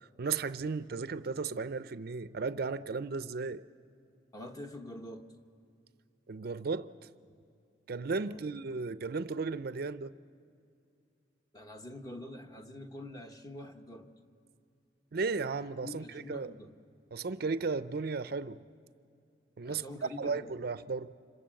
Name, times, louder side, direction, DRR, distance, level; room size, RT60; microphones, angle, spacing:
voice 1, 0.2-3.6 6.3-6.9 7.9-10.1 15.1-16.0 16.3-16.5 17.1-18.6 19.6-19.8 20.2-21.1, right 4 dB, 55° right, 0.5 m, -35 dB
voice 2, 4.3-5.3 8.2-8.4 11.5-14.1 15.8-16.7 19.6-20.6, left 1 dB, 20° left, 1.1 m, -45 dB
26.5 x 22.5 x 7.7 m
head